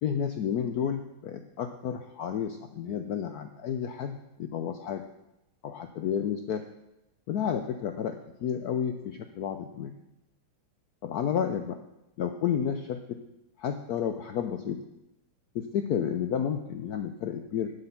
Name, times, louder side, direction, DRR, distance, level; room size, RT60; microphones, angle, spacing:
voice 1, 0.0-5.0 5.6-6.6 7.3-8.2 8.4-9.9 11.0-11.8 12.2-13.0 13.6-14.8 15.5-17.7, left 8 dB, 80° left, 7 dB, 0.8 m, -31 dB
11.5 x 6.7 x 5.7 m, 0.90 s
omnidirectional pair, 2.3 m